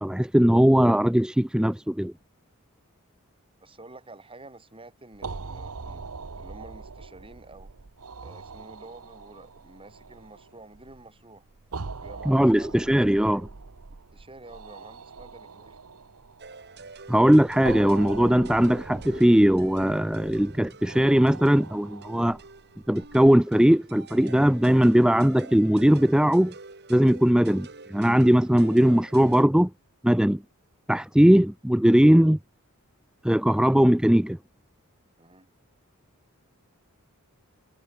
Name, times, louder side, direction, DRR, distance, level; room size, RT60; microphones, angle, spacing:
voice 1, 0.0-2.1 12.3-13.5 17.1-22.4 22.9-26.5 26.9-29.7 30.0-30.4 30.9-32.4 33.2-34.4, equal, 5° right, 0.4 m, -19 dB
voice 2, 3.6-6.1 6.4-7.7 8.2-11.5 12.0-13.1 14.1-15.8 31.3-31.4 35.2-35.5, right 2 dB, 25° right, 3.6 m, -49 dB
sound 1, 5.1-23.3, right 4 dB, 85° right, 1.0 m, -42 dB
sound 2, 16.4-29.4, right 3 dB, 50° right, 3.4 m, -46 dB
head